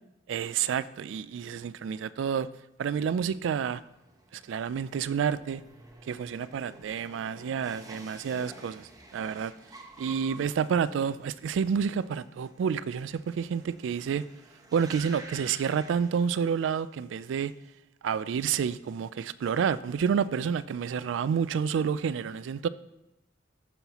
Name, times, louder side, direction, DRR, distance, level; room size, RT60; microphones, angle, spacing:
voice 1, 0.3-2.5 2.8-3.8 4.3-5.6 6.1-9.5 10.0-14.2 14.7-17.5 18.0-22.7, right 7 dB, 80° right, 0.3 m, -29 dB
sound 1, 3.7-16.8 17.1-17.7, right 2 dB, 20° right, 0.9 m, -51 dB
13.0 x 5.5 x 2.9 m
head